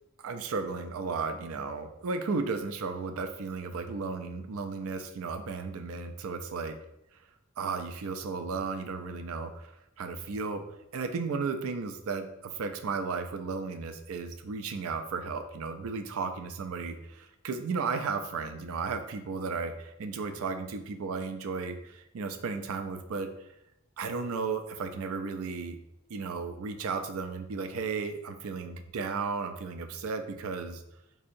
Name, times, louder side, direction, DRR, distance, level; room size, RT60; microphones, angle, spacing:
voice 1, 0.2-6.8 7.6-10.6 10.9-23.3 24.0-25.8 26.1-30.8, right 4 dB, 75° right, 8 dB, 0.4 m, -34 dB
4.1 x 2.7 x 2.6 m, 0.83 s
head